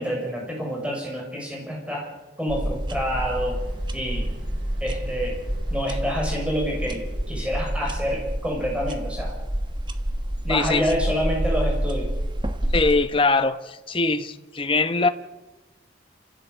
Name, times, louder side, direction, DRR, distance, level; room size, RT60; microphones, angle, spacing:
voice 1, 0.0-2.1 2.4-3.6 3.9-4.3 4.8-5.4 5.7-7.0 7.3-9.3 10.4-12.1, equal, 5° right, -1 dB, 6.6 m, -27 dB
sound 1, 2.5-13.0, right 1 dB, 25° right, 1.3 m, -28 dB
sound 2, 3.1-8.2, equal, 65° right, 6.6 m, -47 dB
voice 2, 10.5-11.0 12.7-15.1, left 3 dB, 30° left, 10 dB, 1.1 m, -22 dB
28.5 x 15.5 x 8.1 m, 1.1 s
head